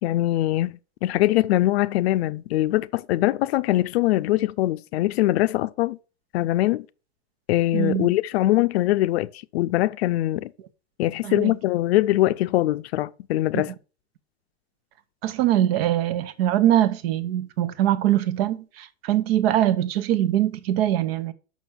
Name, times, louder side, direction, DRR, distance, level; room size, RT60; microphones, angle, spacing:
voice 1, 0.0-6.0 6.3-6.9 7.5-9.3 9.5-10.5 11.0-13.7, left 16 dB, 60° left, 0.6 m, -22 dB
voice 2, 7.7-8.1 11.2-11.6 13.5-13.6 15.2-21.3, right 12 dB, 55° right, 1.1 m, -22 dB
6.1 x 6.0 x 7.0 m
supercardioid pair, 150°, 36 cm